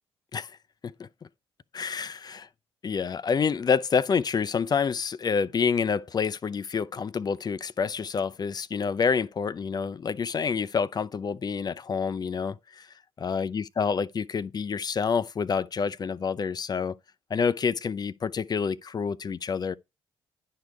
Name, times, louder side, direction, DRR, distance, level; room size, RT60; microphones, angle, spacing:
voice 1, 1.7-2.5 2.8-12.9 13.2-17.0 17.3-19.7, left 6 dB, 35° left, 0.6 m, -28 dB
11.5 x 4.7 x 4.7 m
figure-of-eight pair, 45°, 12 cm